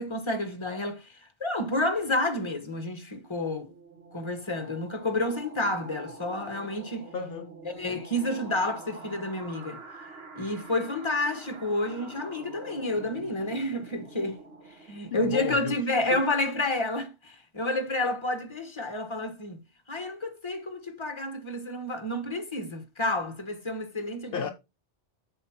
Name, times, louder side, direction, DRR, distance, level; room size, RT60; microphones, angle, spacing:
voice 1, 0.0-3.7 4.1-7.1 7.7-9.8 10.4-14.4 14.9-19.6 19.9-24.5, left 1 dB, 25° left, 1.4 m, -30 dB
sound 1, 3.1-15.5, right 3 dB, 65° right, 1.6 m, -46 dB
voice 2, 7.1-7.5 15.1-15.8 16.1-16.2 24.3-24.5, left 7 dB, 65° left, 0.8 m, -33 dB
7.9 x 5.1 x 4.4 m
omnidirectional pair, 1.1 m